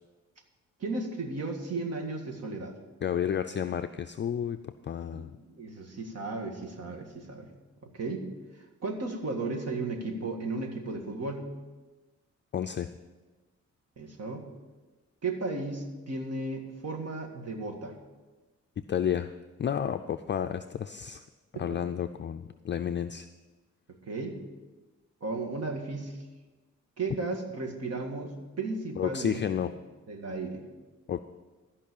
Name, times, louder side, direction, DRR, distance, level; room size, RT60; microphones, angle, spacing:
voice 1, 0.8-2.7 5.1-5.3 5.6-7.5 7.9-8.3 8.8-11.5 14.0-14.5 15.2-18.0 21.5-21.8 24.1-24.4 25.2-26.2 27.0-29.4 30.1-30.6, right 3 dB, 55° right, 3 dB, 1.9 m, -34 dB
voice 2, 3.0-4.6 4.8-5.4 12.5-12.9 18.9-19.3 19.6-21.2 21.6-23.3 29.0-29.7 31.1-31.2, left 9 dB, 40° left, 8 dB, 0.4 m, -31 dB
13.5 x 5.5 x 8.6 m, 1.2 s
wide cardioid pair, 120°, 30 cm